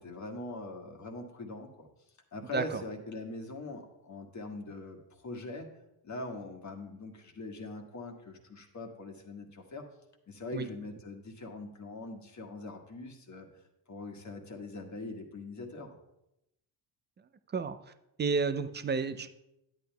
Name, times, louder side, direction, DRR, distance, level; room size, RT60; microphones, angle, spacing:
voice 1, 0.0-1.9 2.3-5.7 6.0-9.8 10.3-13.5 13.9-16.0, left 2 dB, 35° left, 3 dB, 1.5 m, -42 dB
voice 2, 17.5-17.9 18.2-19.3, right 4 dB, 25° right, 11 dB, 0.3 m, -31 dB
10.5 x 8.8 x 2.3 m, 0.87 s
supercardioid pair, 80°, 49 cm